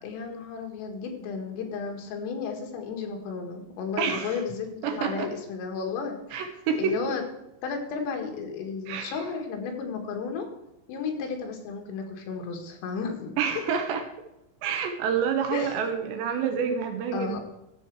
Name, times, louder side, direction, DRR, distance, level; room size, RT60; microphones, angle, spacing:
voice 1, 0.0-6.4 6.8-7.2 7.6-10.5 10.9-13.4 15.5-15.8 17.1-17.4, left 5 dB, 90° left, 3 dB, 4.4 m, -33 dB
voice 2, 4.0-4.4 4.8-5.3 6.3-7.0 8.9-9.2 13.4-14.0 14.6-17.4, right 7 dB, 75° right, 5 dB, 2.9 m, -28 dB
14.0 x 7.5 x 4.7 m, 0.89 s
omnidirectional pair, 5.8 m